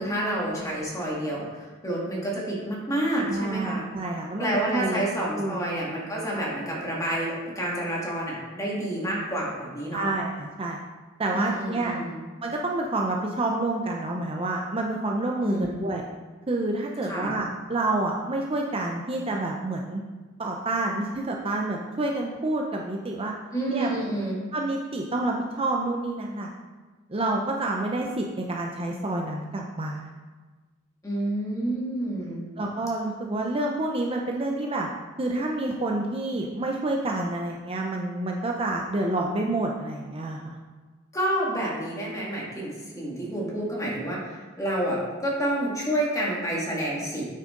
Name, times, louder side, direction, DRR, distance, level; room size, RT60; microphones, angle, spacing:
voice 1, 0.0-3.8 4.4-10.1 11.3-12.2 15.4-15.8 17.0-17.3 23.5-24.4 31.0-32.4 41.1-47.3, right 1 dB, 15° left, -4 dB, 2.1 m, -29 dB
voice 2, 3.3-5.0 5.4-5.6 9.9-10.8 11.2-12.0 12.4-16.1 16.5-20.0 20.4-23.3 23.7-23.9 24.5-26.5 27.1-30.0 32.6-34.9 35.2-40.6, right 2 dB, 25° right, 0 dB, 0.6 m, -28 dB
8.9 x 6.5 x 3.8 m, 1.3 s
head